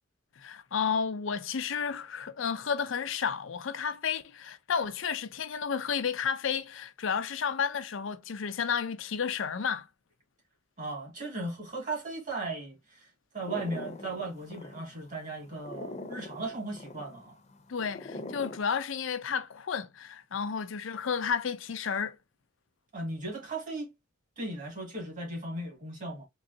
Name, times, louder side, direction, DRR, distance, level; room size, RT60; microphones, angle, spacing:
voice 1, 0.4-9.9 17.7-22.2, left 6 dB, 85° left, 0.5 m, -32 dB
voice 2, 10.8-13.1 13.3-17.4 22.9-23.9 24.4-26.3, right 2 dB, 40° right, 1.9 m, -37 dB
sound 1, 13.4-18.6, left 2 dB, 35° left, 0.6 m, -43 dB
3.9 x 3.0 x 2.6 m
head